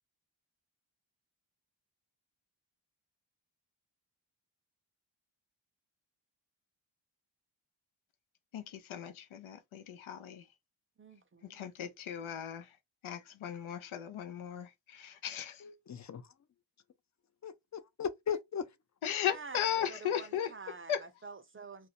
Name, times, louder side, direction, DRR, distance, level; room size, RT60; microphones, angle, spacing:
voice 1, 8.5-10.5 11.4-12.8 13.0-15.7 19.0-20.5 20.9-21.1, left 9 dB, 85° left, 0.6 m, -37 dB
voice 2, 11.0-11.7 19.3-21.9, right 4 dB, 30° right, 0.5 m, -48 dB
voice 3, 15.6-16.3 17.4-18.7, left 7 dB, 40° left, 0.4 m, -38 dB
2.4 x 2.0 x 2.8 m
cardioid pair, 50°, 47 cm